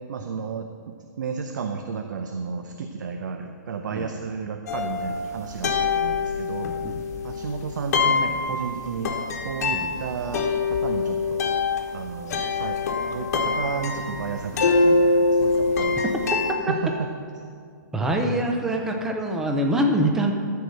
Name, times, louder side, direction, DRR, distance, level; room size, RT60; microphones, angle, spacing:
voice 1, 0.1-6.7 7.2-9.1 9.4-11.4 11.9-12.8 13.1-16.0 16.7-16.9, right 6 dB, 65° right, 6 dB, 0.7 m, -32 dB
sound 1, 4.7-16.5, left 3 dB, 50° left, 1.1 m, -24 dB
voice 2, 17.9-20.3, right 1 dB, 5° right, 3 dB, 0.5 m, -24 dB
13.5 x 4.8 x 6.7 m, 2.2 s
hypercardioid pair, 170°, 11 cm